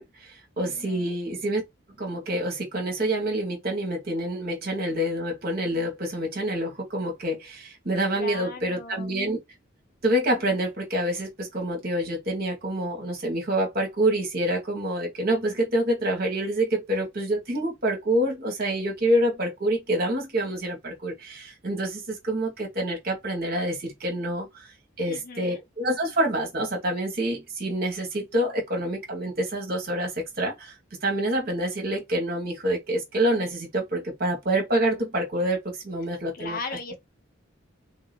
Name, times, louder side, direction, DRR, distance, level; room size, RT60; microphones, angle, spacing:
voice 1, 0.0-1.6 2.0-9.4 10.0-24.7 25.0-30.7 31.0-36.6, right 1 dB, 50° right, 1.5 m, -27 dB
voice 2, 0.6-1.1 8.1-9.1 25.0-25.6 36.3-37.0, left 3 dB, 45° left, 0.9 m, -38 dB
3.7 x 2.9 x 2.5 m
head